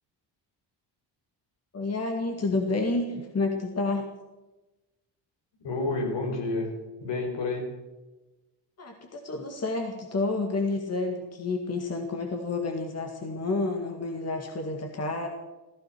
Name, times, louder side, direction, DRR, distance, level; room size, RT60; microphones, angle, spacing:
voice 1, 1.7-4.1 8.8-15.3, left 3 dB, 35° left, 3 dB, 2.1 m, -29 dB
voice 2, 5.6-7.7, left 2 dB, 70° left, 3 dB, 4.6 m, -30 dB
16.0 x 14.0 x 6.2 m, 1.1 s
cardioid pair, 100°, 44 cm